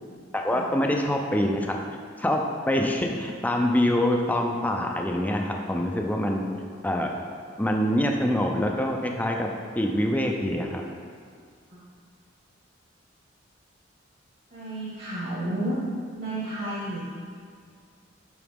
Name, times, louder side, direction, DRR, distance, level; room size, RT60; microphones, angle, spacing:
voice 1, 0.3-1.8 2.2-6.4 6.8-7.1 7.6-9.5 9.7-10.8, left 1 dB, 10° left, 1 dB, 0.5 m, -25 dB
voice 2, 14.5-15.8 16.1-17.0, right 1 dB, 50° right, -9 dB, 1.8 m, -31 dB
11.0 x 4.0 x 3.6 m, 2.1 s
head